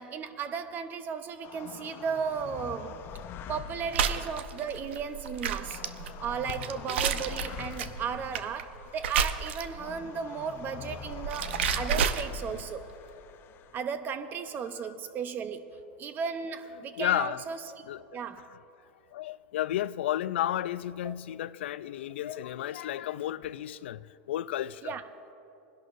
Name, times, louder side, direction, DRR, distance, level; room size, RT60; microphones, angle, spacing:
voice 1, 0.0-3.0 3.5-5.8 6.2-12.8 13.7-17.8 18.1-18.4 21.0-21.1 24.8-25.0, right 6 dB, 30° right, 0.8 m, -35 dB
sound 1, 1.4-13.8, left 8 dB, 35° left, 0.6 m, -45 dB
sound 2, 3.9-9.9 10.9-12.7, right 7 dB, 80° right, 0.7 m, -31 dB
voice 2, 14.6-14.9 16.8-17.4 17.8-18.0 18.3-18.6 19.1-24.9, left 12 dB, 80° left, 0.3 m, -33 dB
22.5 x 11.0 x 2.6 m
hypercardioid pair, 120°, 6 cm